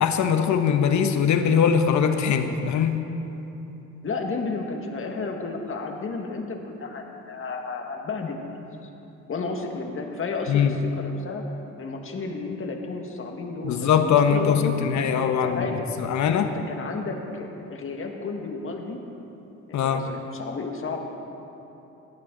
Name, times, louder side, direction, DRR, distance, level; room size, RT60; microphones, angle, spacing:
voice 1, 0.0-3.0 10.5-10.8 13.6-15.7 16.0-16.5 19.7-20.1, left 7 dB, 70° left, 7 dB, 1.1 m, -21 dB
voice 2, 4.0-8.7 9.3-11.4 11.8-14.7 15.2-15.9 16.4-19.0 19.7-21.1, left 4 dB, 45° left, 2 dB, 1.8 m, -32 dB
17.5 x 12.0 x 3.9 m, 3.0 s
cardioid pair, 90°, 30 cm